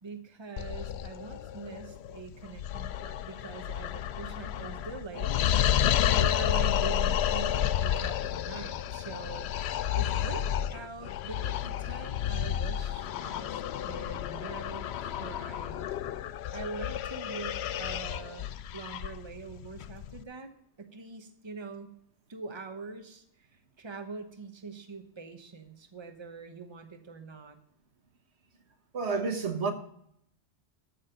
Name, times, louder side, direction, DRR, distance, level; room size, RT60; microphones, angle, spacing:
voice 1, 0.0-5.4 5.7-9.5 10.0-15.9 16.1-20.5 20.8-21.9 22.3-23.5 23.8-27.6, right 4 dB, 25° right, 1.1 m, -43 dB
sound 1, 0.6-20.2, left 10 dB, 75° left, 0.8 m, -31 dB
voice 2, 28.9-29.7, right 4 dB, 75° right, 1.6 m, -29 dB
13.5 x 6.5 x 5.1 m
omnidirectional pair, 1.1 m